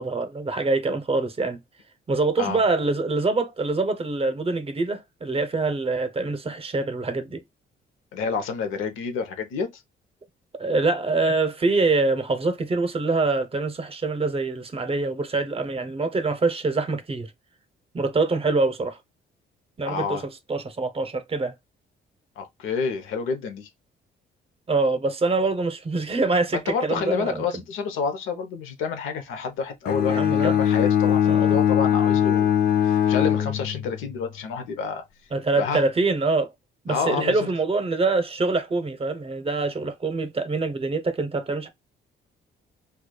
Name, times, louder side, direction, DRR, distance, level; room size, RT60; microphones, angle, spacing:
voice 1, 0.0-1.6 2.1-7.4 10.5-17.3 17.9-19.0 19.8-20.2 20.5-21.5 24.7-27.6 30.1-30.6 31.3-31.6 35.3-36.5 36.8-41.7, right 3 dB, 30° right, 0.6 m, -25 dB
voice 2, 8.1-9.7 19.8-20.2 22.4-23.7 26.5-35.0 35.6-35.8 36.9-37.5, left 5 dB, 85° left, 0.8 m, -29 dB
Bowed string instrument, 29.9-34.1, left 9 dB, 50° left, 0.5 m, -21 dB
4.8 x 2.3 x 2.2 m
cardioid pair, 90°, 20 cm